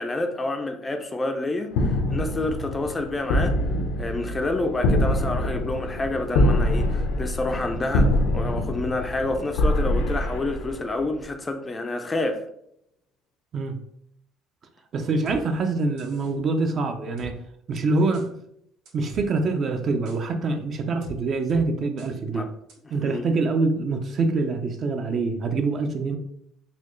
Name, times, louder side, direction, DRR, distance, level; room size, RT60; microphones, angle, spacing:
voice 1, 0.0-3.6 4.0-12.4 22.3-22.5 23.0-23.3, left 2 dB, 20° left, 0.4 m, -28 dB
sound 1, 1.7-11.2, left 1 dB, 80° left, 0.6 m, -24 dB
voice 2, 14.9-17.3 17.7-18.3 18.9-22.5 22.9-26.2, right 3 dB, 40° right, 0.5 m, -25 dB
sound 2, 15.3-15.4 16.0-16.3 17.2-17.3 18.1-18.3 18.9-19.3 20.1-20.2 21.0-21.2 21.5-21.6 22.0-22.1 22.7-22.8, right 3 dB, 80° right, 1.1 m, -40 dB
4.1 x 2.3 x 3.1 m
cardioid pair, 120°, 0 cm